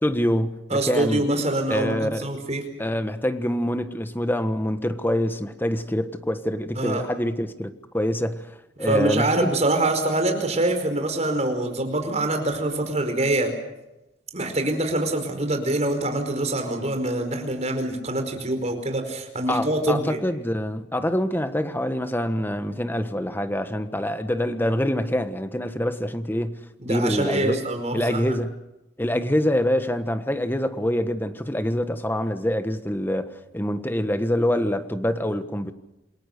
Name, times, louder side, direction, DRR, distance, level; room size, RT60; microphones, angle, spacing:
voice 1, 0.0-1.2 1.7-2.3 2.8-8.5 8.8-9.5 19.5-26.6 26.9-27.6 27.9-28.6 29.0-35.7, equal, 10° left, 1.4 m, -25 dB
voice 2, 0.7-2.6 6.8-7.1 8.8-13.5 14.3-20.2 26.8-28.3, right 1 dB, 35° right, 4.8 m, -25 dB
28.0 x 21.0 x 6.7 m
head